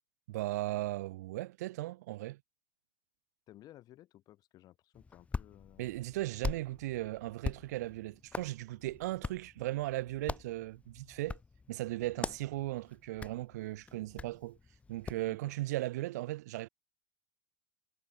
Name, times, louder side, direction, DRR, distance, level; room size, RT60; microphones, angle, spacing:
voice 1, 0.3-2.4 5.8-11.4 11.7-14.6 14.9-16.7, right 17 dB, 70° right, 1.0 m, -37 dB
voice 2, 3.5-5.9 12.2-12.4 15.3-15.6, left 14 dB, 45° left, 7.0 m, -57 dB
Hands, 4.9-15.3, left 4 dB, 15° left, 0.6 m, -43 dB
hypercardioid pair, 95°, 9 cm